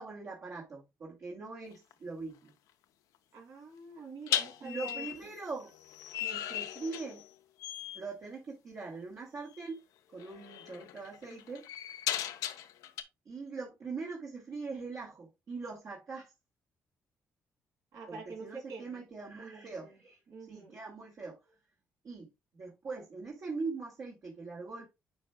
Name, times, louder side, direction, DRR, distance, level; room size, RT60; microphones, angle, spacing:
voice 1, 0.0-2.5 4.6-5.7 6.2-7.2 7.9-9.8 10.1-11.7 13.3-16.3 18.1-20.2 20.5-21.5 22.0-22.3 22.5-24.9, right 4 dB, 55° right, 2.0 m, -42 dB
sound 1, 1.7-1.9 4.3-7.3 7.6-8.1 9.5-9.7 10.2-13.0, left 11 dB, 85° left, 0.6 m, -37 dB
voice 2, 3.3-5.3 17.9-19.0 19.3-20.0 20.3-20.8, right 4 dB, 75° right, 2.7 m, -47 dB
9.4 x 4.5 x 2.2 m
supercardioid pair, 75°, 6 cm